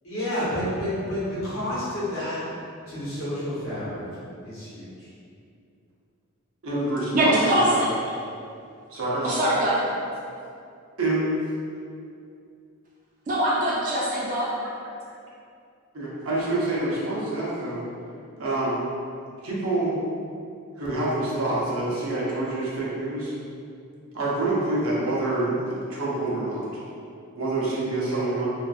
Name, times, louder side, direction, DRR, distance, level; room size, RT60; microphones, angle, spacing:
voice 1, 0.0-2.4 2.9-4.1 4.4-5.1, left 1 dB, 65° left, -11 dB, 1.1 m, -30 dB
voice 2, 6.6-7.8 8.9-9.4 11.0-11.3 15.1-15.2 15.9-17.8 18.4-18.7 19.4-20.0 20.8-23.3 24.1-26.6 27.4-28.5, right 2 dB, 65° right, -6 dB, 0.6 m, -26 dB
voice 3, 7.1-7.9 9.2-9.8 13.3-14.5, right 1 dB, 40° right, -6 dB, 0.3 m, -22 dB
2.4 x 2.4 x 2.3 m, 2.5 s
head